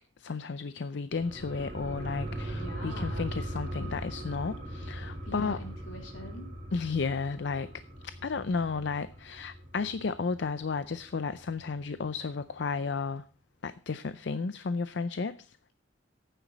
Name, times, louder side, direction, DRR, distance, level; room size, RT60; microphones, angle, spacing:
voice 1, 0.2-5.6 6.7-7.7 8.0-13.2 13.6-15.6, left 4 dB, 60° left, 0.5 m, -33 dB
sound 1, 1.1-10.2 10.6-10.7, right 1 dB, 45° right, 3.9 m, -39 dB
voice 2, 2.5-3.2 5.2-6.5, equal, 75° left, 3.5 m, -44 dB
14.0 x 9.2 x 4.1 m
head